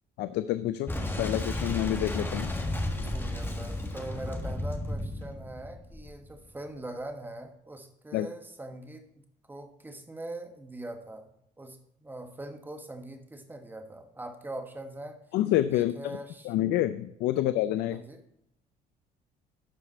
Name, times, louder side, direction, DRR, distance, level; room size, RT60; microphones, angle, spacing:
voice 1, 0.2-0.9 1.2-2.5 8.1-8.3 15.3-15.9 16.4-18.0, left 13 dB, 80° left, 12 dB, 0.5 m, -27 dB
Boom, 0.9-6.4, left 1 dB, 15° left, 1.5 m, -33 dB
voice 2, 3.0-9.1 9.5-15.2 15.7-16.5 17.9-18.2, right 1 dB, 10° right, 6 dB, 1.3 m, -42 dB
12.0 x 4.9 x 4.1 m, 0.80 s
cardioid pair, 110°, 17 cm